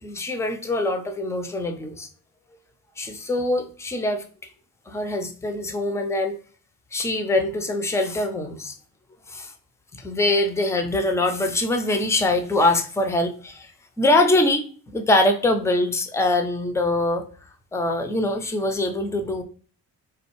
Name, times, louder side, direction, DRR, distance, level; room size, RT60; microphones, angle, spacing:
voice 1, 0.0-2.1 3.0-4.2 4.9-6.4 6.9-8.7 9.3-9.5 10.0-13.7 14.0-14.6 14.9-17.2 17.7-19.4, left 2 dB, 5° left, 6 dB, 0.5 m, -23 dB
3.2 x 2.3 x 3.1 m, 0.42 s
hypercardioid pair, 45°, 47 cm